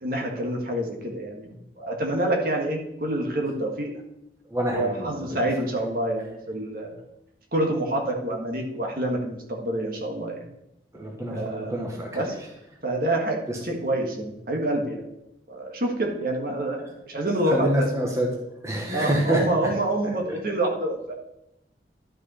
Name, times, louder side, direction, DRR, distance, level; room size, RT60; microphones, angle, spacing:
voice 1, 0.0-3.9 4.7-7.0 7.5-10.4 11.3-11.8 12.1-12.3 12.8-13.4 13.6-15.0 15.5-17.8 18.9-21.1, right 1 dB, 55° right, 1 dB, 1.7 m, -27 dB
voice 2, 4.4-5.5 10.9-12.5 13.5-13.6 17.5-18.3 18.6-19.7 20.0-20.4, equal, 15° right, -1 dB, 1.4 m, -27 dB
12.0 x 5.7 x 4.3 m, 0.84 s
head